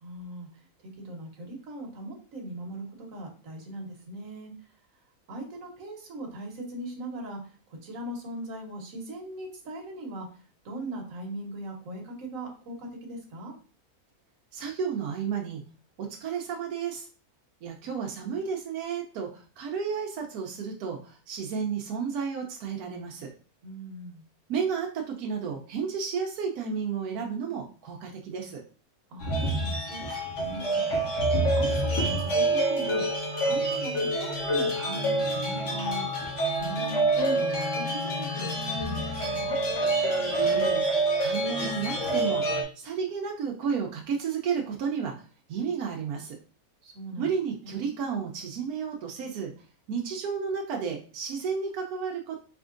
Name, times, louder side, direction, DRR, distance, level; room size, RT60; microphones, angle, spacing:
voice 1, 0.0-4.5 5.3-13.5 23.6-24.2 29.1-30.7 31.5-33.0 33.4-39.6 46.8-47.3 47.6-47.9, right 1 dB, 65° right, 1 dB, 1.4 m, -40 dB
voice 2, 14.5-15.6 16.0-17.1 17.6-23.3 24.5-28.6 30.8-30.9 40.3-45.1 45.5-46.4 47.2-49.5 49.9-52.4, right 6 dB, 90° right, 1 dB, 1.1 m, -32 dB
sound 1, 29.2-42.6, right 1 dB, 55° left, 1.3 m, -27 dB
4.2 x 3.5 x 2.5 m, 0.38 s
omnidirectional pair, 1.5 m